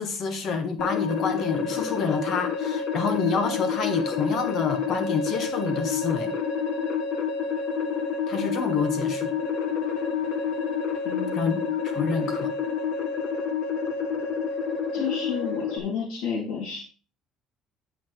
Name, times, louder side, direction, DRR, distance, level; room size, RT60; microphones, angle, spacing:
voice 1, 0.0-6.3 8.3-9.4 11.3-11.5 11.9-12.5, left 5 dB, 40° left, 1.5 m, -28 dB
sound 1, 0.8-15.8, left 6 dB, 60° left, 1.7 m, -28 dB
voice 2, 11.0-11.6 14.9-16.8, left 6 dB, 80° left, 3.7 m, -31 dB
9.7 x 5.9 x 4.6 m
cardioid pair, 175°, 0 cm